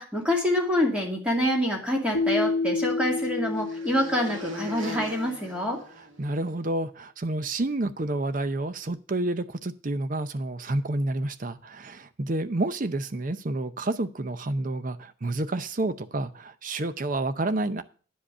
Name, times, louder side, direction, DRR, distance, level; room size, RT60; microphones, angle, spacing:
voice 1, 0.0-5.8, left 1 dB, 5° right, 2.3 m, -26 dB
Keyboard (musical), 2.1-5.0, left 3 dB, 55° left, 0.8 m, -29 dB
sound 1, 2.2-6.6, equal, 85° right, 2.1 m, -41 dB
voice 2, 6.2-17.8, right 2 dB, 40° right, 0.6 m, -29 dB
10.0 x 5.1 x 6.6 m
head